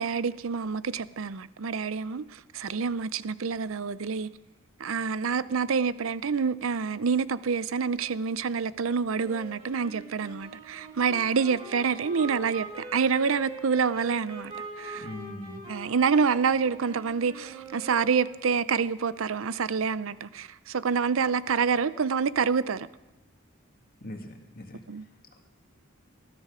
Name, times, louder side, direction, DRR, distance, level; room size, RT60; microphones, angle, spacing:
voice 1, 0.0-4.3 4.8-15.1 15.7-22.9 24.9-25.1, right 5 dB, 75° right, 0.6 m, -27 dB
Wind instrument woodwind instrument, 9.2-18.7, right 3 dB, 30° right, 4.6 m, -43 dB
voice 2, 14.9-15.6 24.0-24.8, left 1 dB, 45° left, 2.1 m, -41 dB
19.5 x 13.5 x 5.0 m
head